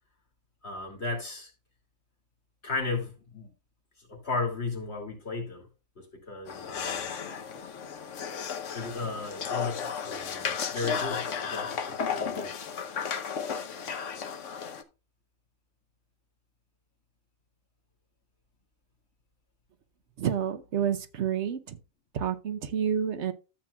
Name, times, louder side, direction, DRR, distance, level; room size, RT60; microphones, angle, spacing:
voice 1, 0.6-1.5 2.6-3.5 4.1-5.7 6.0-7.1 8.7-12.5, left 3 dB, 60° left, 2.8 m, -35 dB
sound 1, 6.5-14.8, left 7 dB, 85° left, 1.2 m, -34 dB
voice 2, 20.2-21.8 22.1-23.3, right 8 dB, 70° right, 1.0 m, -29 dB
13.0 x 7.4 x 2.3 m
omnidirectional pair, 1.2 m